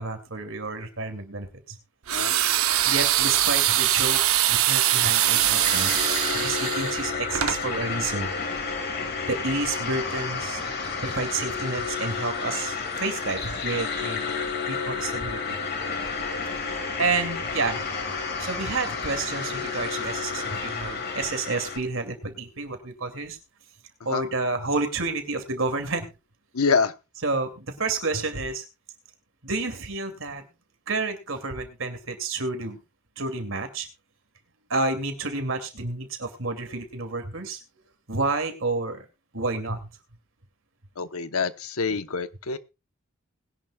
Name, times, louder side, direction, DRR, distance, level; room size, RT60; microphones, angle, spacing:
voice 1, 0.0-1.8 2.4-2.5 2.8-6.1 6.3-8.3 9.3-10.6 11.0-14.3 14.7-15.6 16.6-17.8 18.4-23.4 24.0-26.1 27.2-28.6 29.4-30.4 30.9-32.8 33.2-33.9 34.7-37.6 38.1-39.0 39.3-39.8, right 3 dB, 65° right, 6 dB, 2.6 m, -30 dB
sound 1, 2.1-7.6, right 12 dB, 80° right, 0.9 m, -22 dB
sound 2, 4.8-21.8, left 5 dB, 45° left, 2.5 m, -31 dB
voice 2, 26.5-26.9 41.0-42.6, left 5 dB, 85° left, 11 dB, 1.0 m, -26 dB
20.5 x 11.0 x 2.3 m, 0.27 s
head